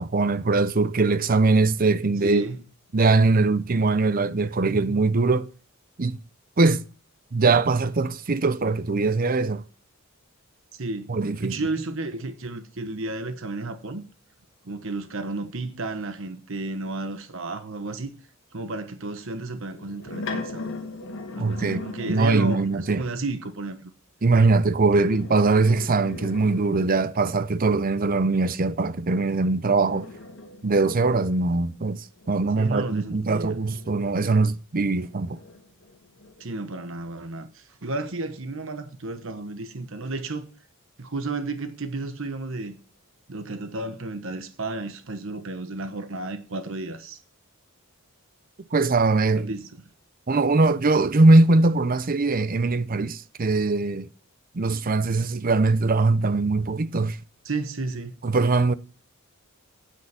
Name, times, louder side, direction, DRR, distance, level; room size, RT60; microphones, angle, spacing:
voice 1, 0.0-2.4 2.9-5.5 6.0-6.2 6.6-6.8 7.3-9.6 11.1-11.5 21.4-23.0 24.2-30.1 30.6-35.4 48.7-49.5 50.3-54.1 54.5-57.2 58.2-58.7, right 3 dB, 40° right, 0.6 m, -21 dB
voice 2, 2.2-2.6 4.8-4.9 10.8-11.1 11.4-14.0 14.6-18.1 18.5-20.7 21.3-23.9 24.9-25.2 32.6-33.6 36.4-40.5 41.0-42.8 43.3-47.2 49.3-49.7 57.4-58.2, right 2 dB, 65° right, 1.2 m, -32 dB
sound 1, 19.6-23.0 24.9-27.3 29.2-34.4 34.9-36.7, left 3 dB, 60° left, 1.6 m, -40 dB
9.5 x 8.4 x 5.8 m
head